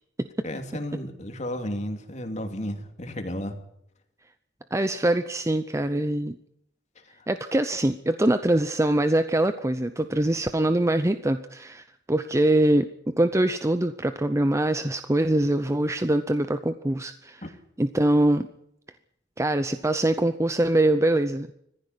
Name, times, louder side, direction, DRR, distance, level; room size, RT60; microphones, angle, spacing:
voice 1, 0.4-3.6 7.0-7.2, left 1 dB, 40° left, 5 dB, 2.9 m, -33 dB
voice 2, 4.7-6.4 7.3-12.9 13.2-17.4 17.8-18.5 19.4-21.5, right 1 dB, 15° right, 10 dB, 0.7 m, -23 dB
19.0 x 15.5 x 9.8 m, 0.74 s
head